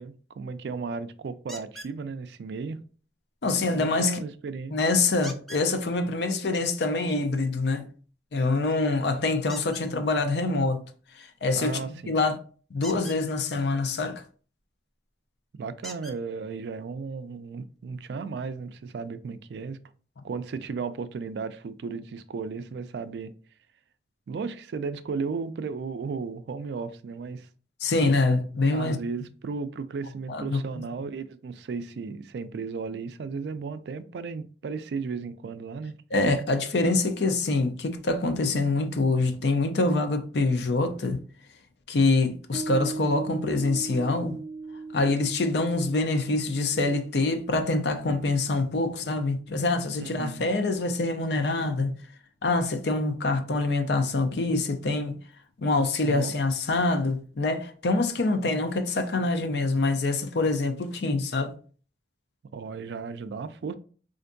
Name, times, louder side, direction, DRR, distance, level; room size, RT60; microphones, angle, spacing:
voice 1, 0.0-2.8 3.6-4.7 11.6-12.2 15.6-19.8 20.2-23.3 24.3-27.5 28.7-35.9 50.0-50.4 56.0-56.3 62.5-63.7, right 5 dB, 70° right, 0.3 m, -35 dB
sound 1, 1.5-1.9 5.2-5.7 9.5-9.8 12.7-13.2 14.9-15.0 15.8-16.2 17.2-17.3 17.8-17.9, equal, ahead, 0.4 m, -42 dB
voice 2, 3.4-4.2 4.7-7.9 8.3-10.8 11.1-12.4 12.7-14.2 27.8-29.0 30.3-30.8 36.1-41.2 41.9-44.4 44.9-51.9 52.4-55.2 55.6-61.5, left 3 dB, 70° left, 0.5 m, -25 dB
Piano, 42.5-49.3, right 3 dB, 50° right, 0.8 m, -39 dB
4.3 x 2.5 x 2.5 m
head